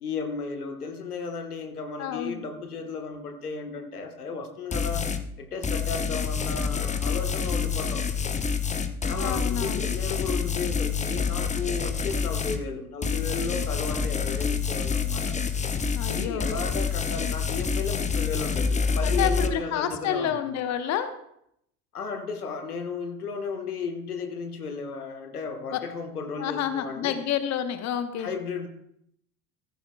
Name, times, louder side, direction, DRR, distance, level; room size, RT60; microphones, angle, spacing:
voice 1, 0.0-8.1 9.1-15.4 16.1-20.4 21.9-27.2 28.2-28.7, left 4 dB, 80° left, 5 dB, 1.4 m, -34 dB
voice 2, 2.0-2.4 9.2-9.8 15.9-16.5 19.0-21.1 25.7-25.8 26.4-28.3, left 9 dB, 35° left, 10 dB, 1.0 m, -29 dB
sound 1, 4.7-5.2 5.6-12.6 13.0-19.5, left 5 dB, 15° left, 0.8 m, -27 dB
15.0 x 13.5 x 2.2 m, 0.74 s
figure-of-eight pair, 65°, 45 cm